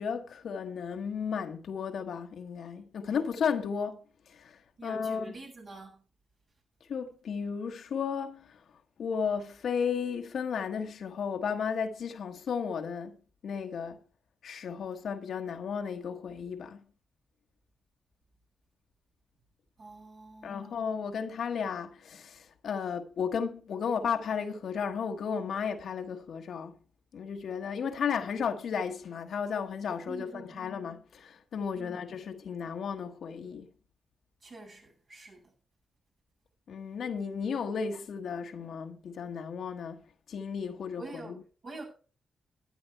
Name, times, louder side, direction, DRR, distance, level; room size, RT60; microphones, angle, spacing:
voice 1, 0.0-4.0 4.3-5.2 6.9-8.6 9.0-13.2 13.4-14.0 14.4-16.8 20.4-26.8 27.1-33.7 36.7-40.0 40.3-41.4, left 6 dB, 70° left, 1.2 m, -34 dB
voice 2, 4.8-6.0 19.8-20.8 30.1-30.8 31.7-32.0 34.4-35.5 41.0-41.8, right 2 dB, 60° right, 6.3 m, -46 dB
12.5 x 9.3 x 4.6 m
supercardioid pair, 45°, 0 cm